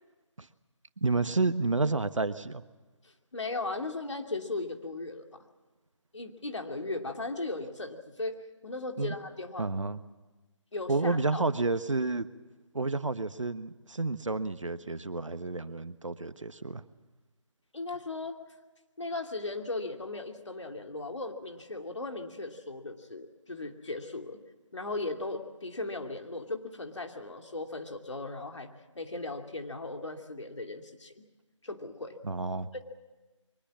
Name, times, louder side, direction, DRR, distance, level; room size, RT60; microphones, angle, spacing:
voice 1, 1.0-2.6 9.0-9.1 9.6-10.0 10.9-12.3 12.7-16.8 32.2-32.7, right 3 dB, 75° right, 12 dB, 1.3 m, -30 dB
voice 2, 3.0-5.3 6.1-9.7 10.7-11.4 17.7-18.4 19.0-24.4 24.7-31.2 31.6-32.2, left 2 dB, 65° left, 4 dB, 2.8 m, -37 dB
23.5 x 20.0 x 7.5 m, 1.2 s
figure-of-eight pair, 160°, 16 cm